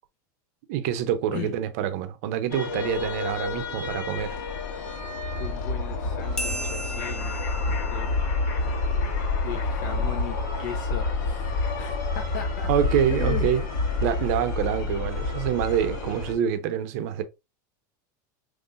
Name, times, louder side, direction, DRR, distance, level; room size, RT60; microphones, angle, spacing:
voice 1, 0.7-4.4 12.7-13.6 14.0-17.2, right 10 dB, 50° right, 0.6 m, -26 dB
sound 1, 2.5-16.3, left 3 dB, 90° left, 1.6 m, -28 dB
voice 2, 5.4-8.1 9.4-12.7 13.1-13.5, left 9 dB, 65° left, 0.8 m, -37 dB
sound 2, 6.4-9.4, equal, 5° left, 0.4 m, -37 dB
5.5 x 3.1 x 2.5 m
supercardioid pair, 175°, 10 cm